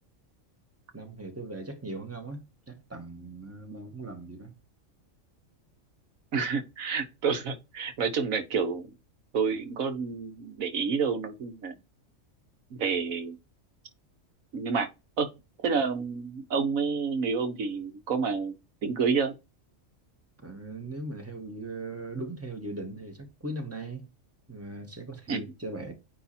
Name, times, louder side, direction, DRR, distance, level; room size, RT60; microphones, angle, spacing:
voice 1, 0.9-4.5 20.4-24.1 24.5-25.9, right 2 dB, 10° right, 1.8 m, -39 dB
voice 2, 6.3-8.9 9.3-11.7 12.7-13.4 14.5-14.9 15.2-15.3 15.6-18.5 18.8-19.3 25.3-25.4, right 5 dB, 85° right, 1.6 m, -29 dB
9.5 x 3.3 x 4.3 m
omnidirectional pair, 1.4 m